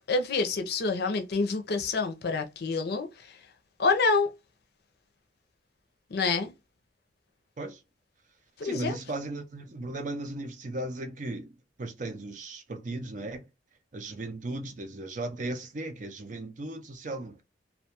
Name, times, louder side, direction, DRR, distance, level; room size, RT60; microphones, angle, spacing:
voice 1, 0.1-3.1 3.8-4.3 6.1-6.5 8.6-9.0, left 4 dB, 60° left, 0.5 m, -27 dB
voice 2, 8.6-13.5 13.9-17.4, right 2 dB, 45° right, 0.5 m, -36 dB
2.3 x 2.3 x 2.8 m
head